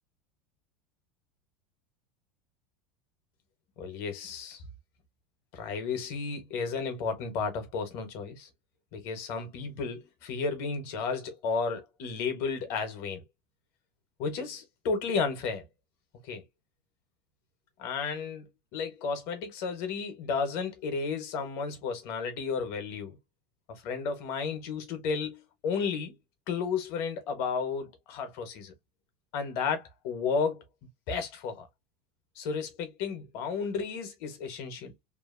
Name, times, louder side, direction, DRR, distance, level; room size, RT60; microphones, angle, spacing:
voice 1, 3.8-4.6 5.5-8.5 8.9-13.2 14.2-15.7 16.2-16.4 17.8-23.2 23.7-26.2 26.5-28.7 29.3-30.6 31.1-31.7 32.3-34.9, left 5 dB, 50° left, 1.0 m, -33 dB
2.8 x 2.4 x 2.5 m
supercardioid pair, 155°, 6 cm